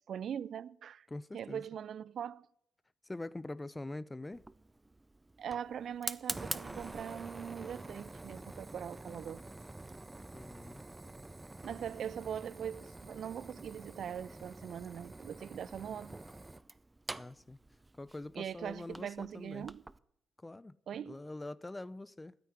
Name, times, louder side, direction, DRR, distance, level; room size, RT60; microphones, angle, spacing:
voice 1, 0.1-1.1 1.3-2.5 5.4-9.4 11.6-16.2 18.4-19.8 20.9-21.2, right 8 dB, 65° right, 0.4 m, -41 dB
voice 2, 1.1-1.6 3.0-4.4 10.3-10.8 17.1-17.6 17.9-19.7 20.4-20.8 21.1-22.4, left 2 dB, 20° left, 0.6 m, -44 dB
Fire, 4.3-20.0, right 2 dB, 20° right, 0.6 m, -46 dB
9.3 x 9.0 x 9.8 m
hypercardioid pair, 40°, 0 cm